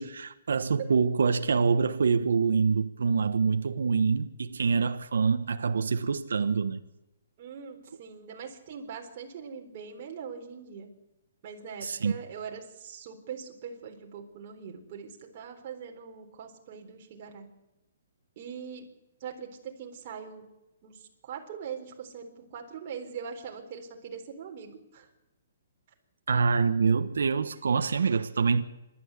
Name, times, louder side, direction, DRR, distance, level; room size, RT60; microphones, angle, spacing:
voice 1, 0.0-6.8 11.8-12.1 26.3-28.6, right 5 dB, 90° right, 1.3 m, -25 dB
voice 2, 7.4-10.9 11.4-17.5 18.4-18.8 19.2-20.4 20.8-25.1, right 7 dB, 35° right, 4.0 m, -42 dB
27.0 x 12.5 x 8.3 m
hypercardioid pair, 165°, 0 cm